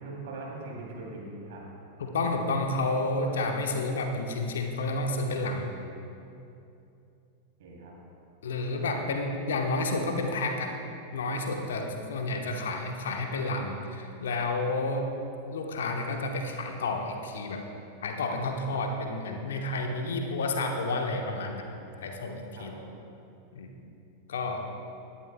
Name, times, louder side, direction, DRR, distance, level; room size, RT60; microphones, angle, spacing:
voice 1, 0.0-1.6 7.6-8.0 22.6-22.9, right 2 dB, 55° right, -2 dB, 2.9 m, -41 dB
voice 2, 2.0-5.7 8.4-10.7 11.1-15.0 15.5-17.6 18.0-21.6 22.0-22.7 23.5-23.7 24.3-24.6, left 2 dB, 60° left, 3 dB, 1.1 m, -30 dB
18.0 x 11.5 x 2.2 m, 2.7 s
figure-of-eight pair, 90°, 0 cm